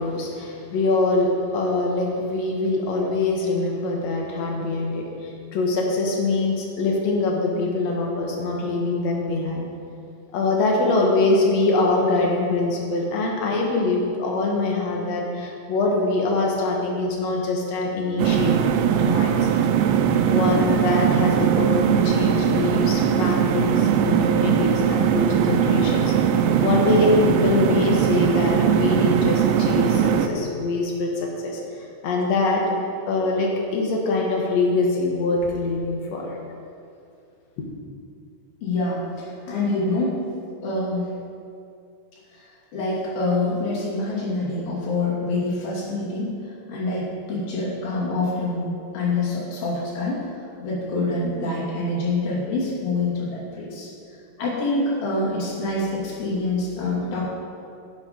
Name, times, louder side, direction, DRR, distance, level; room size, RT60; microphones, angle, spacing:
voice 1, 0.0-9.6 10.3-19.4 20.3-31.6 32.0-32.6 33.1-36.4 37.6-37.7, left 3 dB, 70° left, -1 dB, 1.5 m, -23 dB
sound 1, 18.2-30.3, right 8 dB, 90° right, 3.0 m, -20 dB
voice 2, 38.6-40.2 40.6-41.1 42.3-46.3 46.7-53.9 54.4-57.3, left 2 dB, 55° left, -6 dB, 4.1 m, -26 dB
11.5 x 8.3 x 5.3 m, 2.5 s
omnidirectional pair, 5.2 m